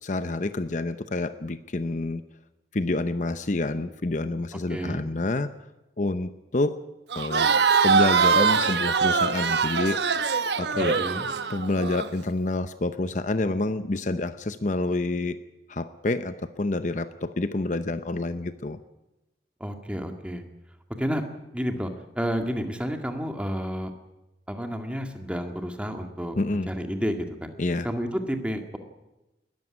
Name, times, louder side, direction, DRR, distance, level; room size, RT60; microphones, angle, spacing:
voice 1, 0.0-2.2 2.7-5.5 6.0-6.8 7.1-7.5 7.8-10.0 10.6-11.0 11.5-15.4 15.7-18.8 26.4-26.7 27.6-27.9, left 2 dB, 45° left, 11 dB, 0.8 m, -28 dB
voice 2, 4.7-5.0 11.0-11.3 19.6-20.4 21.0-21.2 21.5-23.9 24.5-26.4 26.7-27.5 27.8-28.8, equal, 5° right, 5 dB, 2.0 m, -30 dB
Crowd, 7.1-12.1, right 5 dB, 70° right, 1.1 m, -23 dB
20.5 x 14.0 x 9.9 m, 0.99 s
head